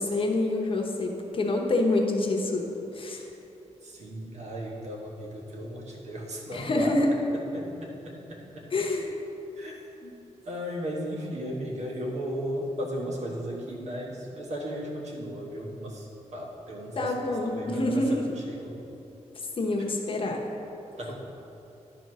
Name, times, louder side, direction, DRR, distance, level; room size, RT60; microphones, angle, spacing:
voice 1, 0.0-2.6 2.9-3.3 6.5-7.1 8.7-9.1 10.0-10.1 17.0-18.2 19.6-20.5, left 2 dB, 45° left, 0 dB, 1.0 m, -26 dB
voice 2, 3.8-8.7 9.6-9.8 10.4-18.8 21.0-21.1, equal, 65° right, -2 dB, 1.4 m, -36 dB
11.0 x 4.1 x 6.2 m, 2.9 s
wide cardioid pair, 170°, 13 cm